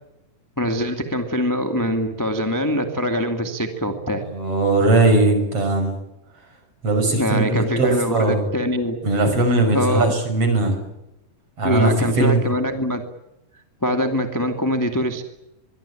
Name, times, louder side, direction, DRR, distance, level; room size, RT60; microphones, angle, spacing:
voice 1, 0.6-4.2 7.1-9.0 9.7-10.1 11.6-13.0 13.8-15.2, equal, 5° left, 5 dB, 1.7 m, -23 dB
voice 2, 4.2-6.0 6.8-8.4 9.0-10.8 11.6-12.4, right 2 dB, 40° right, 7 dB, 6.6 m, -19 dB
25.0 x 23.5 x 8.7 m, 0.92 s
omnidirectional pair, 4.0 m